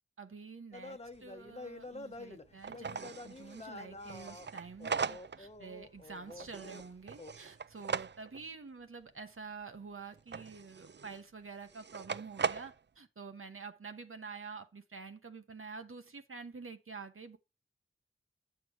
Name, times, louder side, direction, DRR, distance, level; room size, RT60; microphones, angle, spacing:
voice 1, 0.2-17.4, right 4 dB, 85° right, 1.0 m, -48 dB
sound 1, 0.7-6.9 7.2-7.3, left 2 dB, 30° left, 1.0 m, -48 dB
sound 2, 1.1-1.2 1.5-1.6 2.1-2.2 2.6-5.6 5.9-8.5 10.1-11.2 11.7-12.8, right 6 dB, 60° right, 0.4 m, -39 dB
8.5 x 7.8 x 4.6 m
wide cardioid pair, 60°, 21 cm